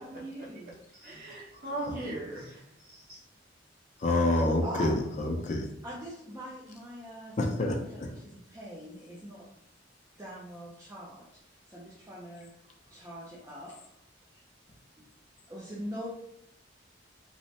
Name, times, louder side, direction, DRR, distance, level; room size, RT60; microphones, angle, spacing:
voice 1, 0.0-0.7 4.6-5.1 5.8-9.5 10.2-11.4 11.7-12.5 12.9-13.8 15.5-16.1, equal, 15° right, -6 dB, 0.4 m, -42 dB
voice 2, 0.9-3.2, right 1 dB, 50° right, -5 dB, 0.9 m, -39 dB
voice 3, 4.0-5.7 7.4-7.8, left 2 dB, 40° left, 1 dB, 0.5 m, -27 dB
3.1 x 2.1 x 2.7 m, 0.78 s
head